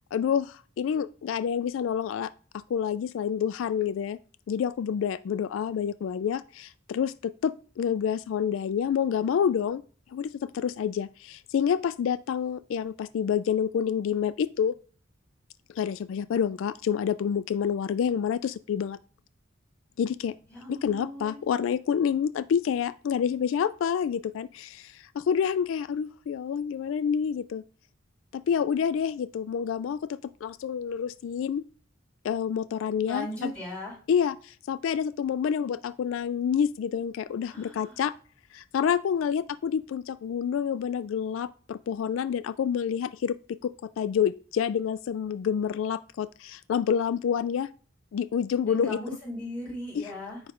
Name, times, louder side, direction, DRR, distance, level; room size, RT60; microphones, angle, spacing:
voice 1, 0.1-2.3 2.7-4.2 4.5-9.8 10.1-14.7 15.8-19.0 20.0-20.3 20.7-27.6 28.3-31.6 32.2-33.5 34.1-38.1 38.5-43.4 43.6-47.7 48.1-49.0 49.9-50.1, left 7 dB, 80° left, 14 dB, 0.3 m, -28 dB
voice 2, 20.5-21.4 33.1-33.9 37.4-38.0 48.6-50.4, left 1 dB, 5° left, -6 dB, 3.8 m, -38 dB
9.3 x 3.2 x 4.9 m, 0.42 s
head